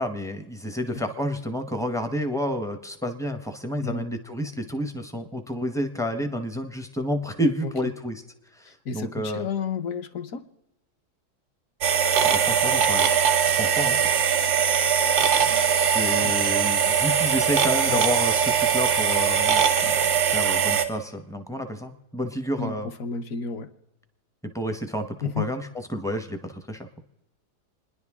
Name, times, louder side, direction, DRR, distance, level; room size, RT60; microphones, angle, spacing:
voice 1, 0.0-8.2 8.5-9.5 12.2-13.1 13.4-14.0 15.7-19.9 20.3-22.9 24.5-26.9, equal, 5° left, 6 dB, 0.5 m, -30 dB
voice 2, 8.8-10.4 16.2-16.3 17.9-18.0 22.6-23.7 25.2-25.5, left 5 dB, 60° left, 7 dB, 1.2 m, -31 dB
sound 1, 11.8-20.8, right 8 dB, 85° right, 1.5 m, -21 dB
28.5 x 10.5 x 3.6 m, 0.95 s
omnidirectional pair, 1.7 m